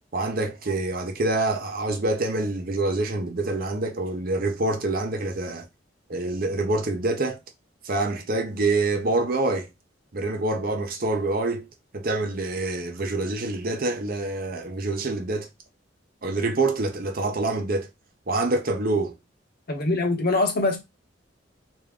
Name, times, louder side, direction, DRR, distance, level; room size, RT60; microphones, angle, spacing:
voice 1, 0.1-5.7 6.1-7.4 7.8-9.7 10.1-11.7 11.9-15.5 16.2-17.9 18.3-19.1, right 2 dB, 50° right, 0.7 m, -26 dB
voice 2, 19.7-20.8, left 2 dB, 55° left, 1.0 m, -23 dB
3.5 x 2.6 x 3.5 m
head